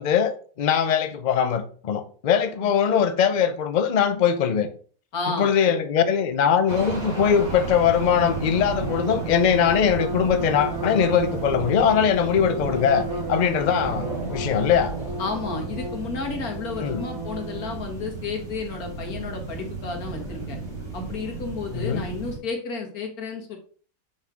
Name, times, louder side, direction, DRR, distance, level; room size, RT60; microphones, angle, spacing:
voice 1, 0.0-4.7 5.4-14.9 16.8-17.0 21.7-22.1, left 8 dB, 50° left, 0.5 m, -21 dB
voice 2, 5.1-5.7 13.6-13.8 15.2-20.6 20.9-23.6, left 4 dB, 80° left, 2.0 m, -32 dB
sound 1, 6.7-22.4, right 4 dB, 70° right, 2.8 m, -34 dB
sound 2, 8.2-17.8, equal, 20° right, 0.7 m, -34 dB
6.4 x 4.1 x 4.8 m
omnidirectional pair, 1.5 m